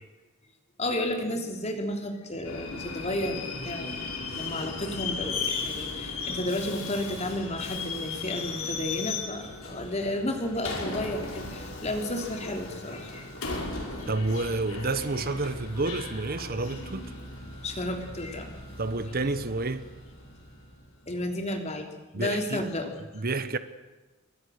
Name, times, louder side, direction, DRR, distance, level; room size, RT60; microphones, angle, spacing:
voice 1, 0.8-4.0 4.4-13.3 17.6-18.5 21.1-21.9 22.2-22.9, left 1 dB, 30° left, 3.4 m, -32 dB
Subway metro underground, 2.4-20.9, left 4 dB, 85° left, 5.6 m, -37 dB
voice 2, 14.1-17.1 18.8-19.9 22.1-22.7 23.1-23.6, right 3 dB, 45° right, 1.1 m, -29 dB
27.0 x 22.5 x 6.6 m
head